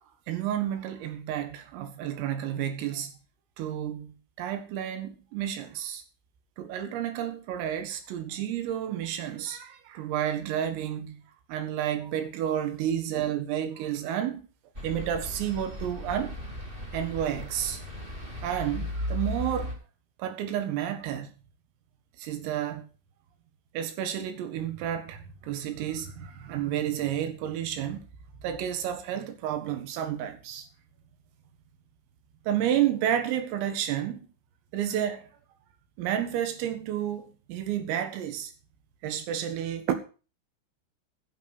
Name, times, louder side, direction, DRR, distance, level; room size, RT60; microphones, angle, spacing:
voice 1, 0.3-3.1 3.6-6.0 6.6-11.2 11.5-14.4 14.8-16.4 16.9-17.8 18.4-19.8 20.2-21.3 22.2-22.9 23.7-28.1 28.4-30.7 32.5-34.3 34.7-35.3 36.0-38.5 39.0-39.9, right 10 dB, 85° right, 4.3 m, -31 dB
sound 1, 14.7-19.7, left 1 dB, 20° right, 1.6 m, -36 dB
15.0 x 8.4 x 5.2 m
omnidirectional pair, 5.9 m